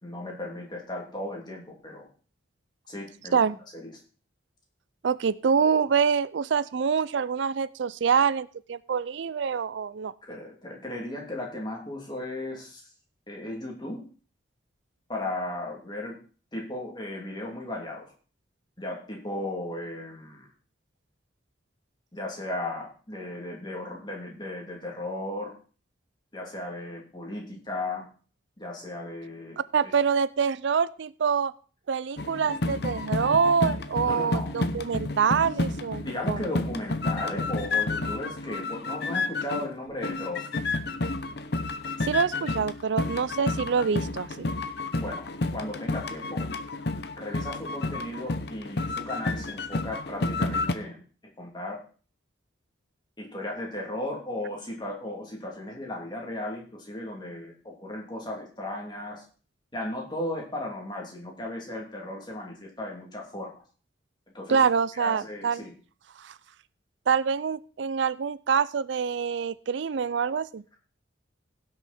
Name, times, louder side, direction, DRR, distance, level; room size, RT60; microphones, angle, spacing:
voice 1, 0.0-2.1 2.9-3.4 3.7-3.9 10.3-12.8 13.3-14.0 15.1-16.1 16.5-18.1 18.8-20.5 22.1-25.5 26.3-28.1 28.6-29.9 34.0-34.5 35.6-40.5 44.9-46.4 47.1-51.0 51.4-51.8 53.2-59.2 59.7-63.5 64.3-64.6 65.0-65.7, left 1 dB, 25° left, -1 dB, 3.0 m, -36 dB
voice 2, 5.0-10.1 29.7-31.5 31.9-36.4 42.0-44.5 64.5-65.6 66.2-66.3 67.1-70.6, right 6 dB, 70° right, 18 dB, 0.4 m, -25 dB
sound 1, 32.2-39.8 40.0-50.7, left 2 dB, 55° left, 0.9 m, -30 dB
16.5 x 6.5 x 4.3 m, 0.39 s
head